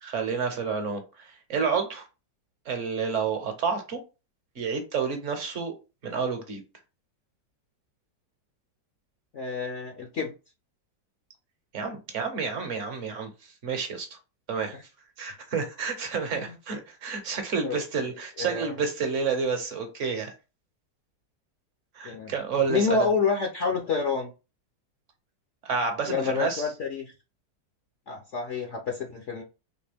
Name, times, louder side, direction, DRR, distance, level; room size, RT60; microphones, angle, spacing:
voice 1, 0.0-2.0 2.7-4.0 4.6-5.7 6.0-6.6 11.7-13.3 13.6-14.2 14.5-14.7 15.2-20.3 21.9-23.1 25.6-26.7, right 5 dB, 50° right, 1.0 m, -29 dB
voice 2, 9.3-10.3 14.7-14.8 16.4-16.6 17.6-17.7 18.4-18.7 22.0-22.3 22.7-24.3 26.1-27.1 28.1-29.4, left 5 dB, 55° left, 0.9 m, -28 dB
4.3 x 3.1 x 3.4 m
omnidirectional pair, 1.9 m